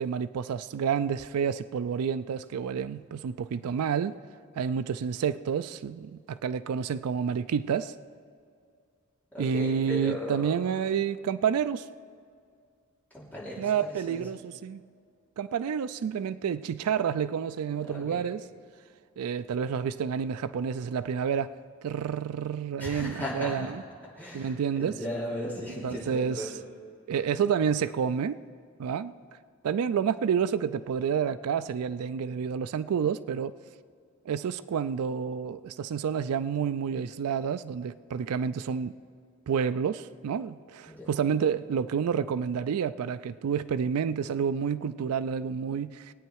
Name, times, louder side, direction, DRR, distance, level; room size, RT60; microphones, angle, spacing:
voice 1, 0.0-4.2 4.6-7.9 9.4-11.9 13.6-14.8 15.4-18.4 19.2-21.6 21.8-23.8 24.3-25.0 25.8-26.5 27.1-28.4 28.8-29.1 29.6-33.5 34.3-38.9 39.5-46.1, right 7 dB, 80° right, 0.3 m, -29 dB
voice 2, 9.3-10.6 13.1-13.7 14.1-14.2 17.8-18.2 22.8-23.7 24.2-24.5 24.8-26.5 40.9-41.1, equal, 5° left, 3.0 m, -36 dB
21.0 x 9.1 x 4.7 m
head